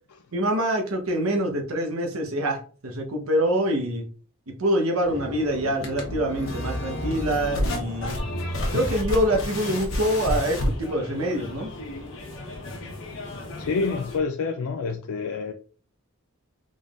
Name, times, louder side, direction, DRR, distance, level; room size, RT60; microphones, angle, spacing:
voice 1, 0.3-4.1 4.5-8.2 8.7-11.7, right 1 dB, 70° right, 1.0 m, -25 dB
sound 1, 5.0-14.2, left 1 dB, 65° left, 1.1 m, -31 dB
voice 2, 13.6-15.5, left 4 dB, 80° left, 0.4 m, -28 dB
3.9 x 3.7 x 2.4 m
head